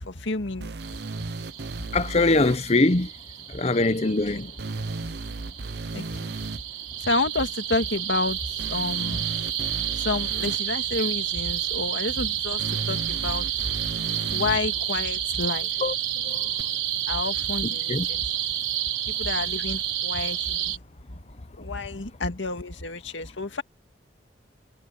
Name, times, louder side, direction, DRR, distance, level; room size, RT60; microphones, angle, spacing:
voice 1, 0.0-0.7 4.0-4.5 5.9-6.3 7.0-8.4 8.7-9.2 9.9-13.5 14.3-15.7 16.2-16.4 17.1-18.3 19.1-20.8 21.6-23.6, left 3 dB, 90° left, 2.0 m, -30 dB
sound 1, 0.6-2.6 4.6-6.6 8.6-10.6 12.6-14.6 16.6-16.7, right 3 dB, 60° right, 0.7 m, -35 dB
sound 2, 0.8-20.8, right 11 dB, 90° right, 4.1 m, -30 dB
voice 2, 1.9-3.1 3.6-4.5 15.8-15.9 17.9-18.1, left 2 dB, 35° left, 0.8 m, -21 dB
head